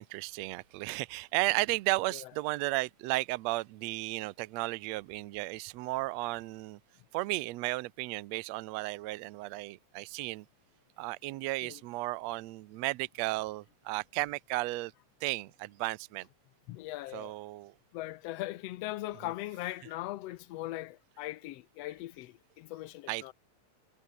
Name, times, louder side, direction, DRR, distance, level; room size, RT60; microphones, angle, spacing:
voice 1, 0.0-6.8 7.1-10.4 11.0-14.9 15.2-16.3 17.1-17.7 23.1-23.3, right 21 dB, 75° right, 1.7 m, -34 dB
voice 2, 16.7-17.3 17.9-23.3, left 16 dB, 75° left, 1.6 m, -40 dB
omnidirectional pair, 3.5 m